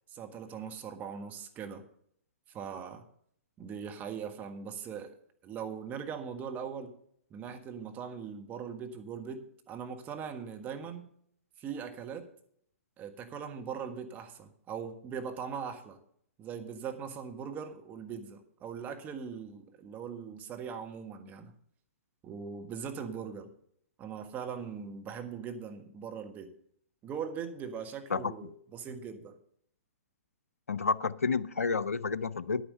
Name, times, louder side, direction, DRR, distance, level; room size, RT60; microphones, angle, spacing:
voice 1, 0.1-1.8 2.5-3.1 3.6-5.1 5.4-6.9 7.3-11.1 11.6-12.3 13.0-16.0 16.4-21.5 22.2-23.5 24.0-26.5 27.0-29.4, right 7 dB, 20° right, 5 dB, 1.5 m, -40 dB
voice 2, 30.7-32.6, left 4 dB, 80° left, 16 dB, 0.5 m, -30 dB
10.0 x 9.3 x 5.4 m, 0.67 s
figure-of-eight pair, 120°, 8 cm